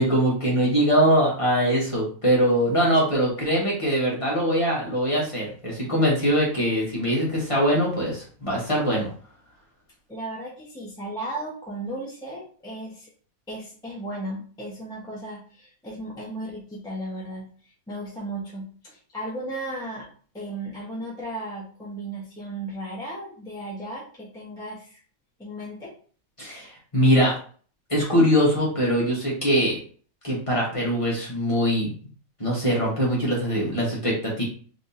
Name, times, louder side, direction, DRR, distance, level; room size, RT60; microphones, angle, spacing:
voice 1, 0.0-9.1 26.4-27.3 27.9-29.8 30.2-31.9 32.4-34.4, equal, 25° left, -4 dB, 1.1 m, -22 dB
voice 2, 10.1-13.1 13.5-17.5 17.9-20.1 20.3-25.0 25.4-25.9, right 1 dB, 5° left, -5 dB, 0.7 m, -35 dB
3.4 x 3.0 x 2.8 m, 0.43 s
omnidirectional pair, 1.5 m